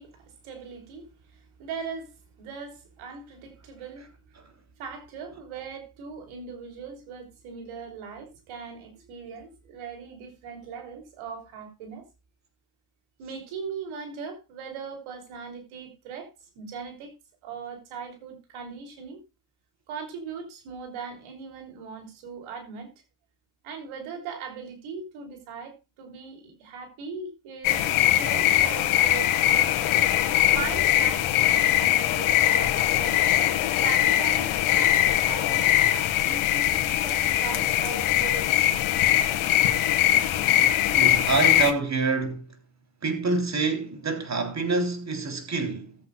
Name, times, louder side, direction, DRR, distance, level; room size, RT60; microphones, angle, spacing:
voice 1, 0.0-4.2 4.8-12.1 13.2-17.1 17.4-19.2 19.9-22.9 23.6-29.7 30.5-33.2 33.8-35.8 36.2-38.8 40.7-41.0, right 5 dB, 90° right, 3.6 m, -39 dB
sound 1, 27.6-41.7, left 12 dB, 90° left, 1.8 m, -22 dB
voice 2, 40.9-42.4 43.0-46.0, right 3 dB, 35° right, 3.5 m, -26 dB
19.0 x 8.0 x 2.3 m
cardioid pair, 80°, 47 cm